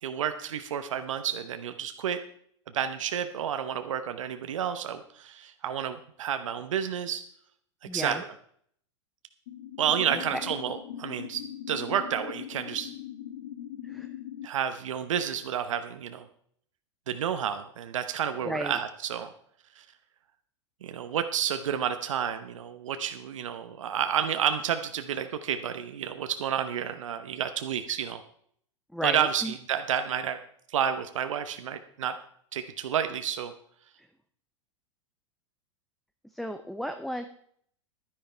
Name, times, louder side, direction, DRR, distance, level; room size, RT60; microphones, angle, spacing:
voice 1, 0.0-2.2 2.7-7.2 7.9-8.2 9.8-12.9 14.4-16.3 17.1-19.3 19.7-19.8 20.8-28.2 29.0-30.4 30.7-32.2 32.5-33.5, right 9 dB, 75° right, 9 dB, 1.0 m, -30 dB
voice 2, 7.8-8.2 10.3-10.4 13.8-14.1 15.2-15.3 18.4-18.8 28.9-29.5 34.0-34.1 36.3-37.2, equal, ahead, 8 dB, 0.7 m, -34 dB
sound 1, 9.5-14.5, left 11 dB, 60° left, 0.8 m, -40 dB
12.0 x 10.5 x 4.5 m, 0.63 s
hypercardioid pair, 105°, 16 cm